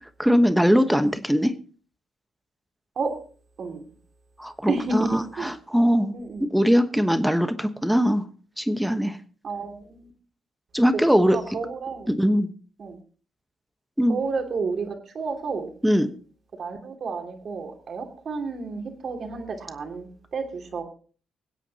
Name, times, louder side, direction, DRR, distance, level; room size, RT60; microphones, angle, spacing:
voice 1, 0.2-1.5 4.4-6.2 6.5-8.2 8.6-9.2 10.7-11.4 12.2-12.5 14.0-14.2 15.8-16.1, equal, 5° right, 10 dB, 1.1 m, -21 dB
voice 2, 4.7-5.5 6.1-6.4 9.4-10.1 11.3-12.1 12.8-13.0 14.1-15.7 16.6-20.8, right 4 dB, 55° right, 4 dB, 2.8 m, -31 dB
24.5 x 8.3 x 2.9 m, 0.40 s
supercardioid pair, 70°, 0 cm